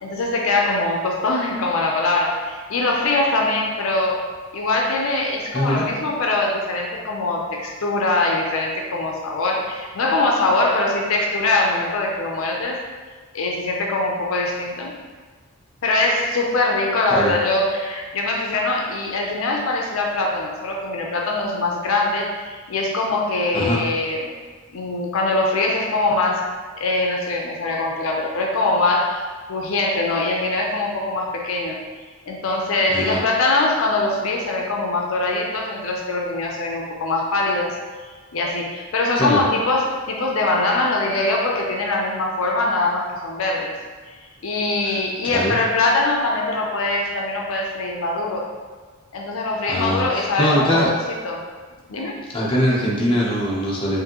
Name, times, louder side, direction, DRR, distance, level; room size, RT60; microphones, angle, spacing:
voice 1, 0.0-4.2 4.5-12.8 13.3-14.9 15.8-24.3 24.7-26.5 26.8-29.2 29.5-31.8 32.3-37.8 38.0-43.7 44.1-44.2 44.4-48.5 49.1-51.0 51.2-51.4 51.9-52.2, left 2 dB, 70° left, 0 dB, 0.5 m, -22 dB
voice 2, 5.5-5.9 17.1-17.3 23.5-23.8 32.9-33.2 39.2-39.4 44.8-45.0 45.3-45.5 49.7-50.9 52.3-54.0, equal, 25° left, -5 dB, 0.7 m, -22 dB
5.0 x 2.6 x 2.9 m, 1.5 s
head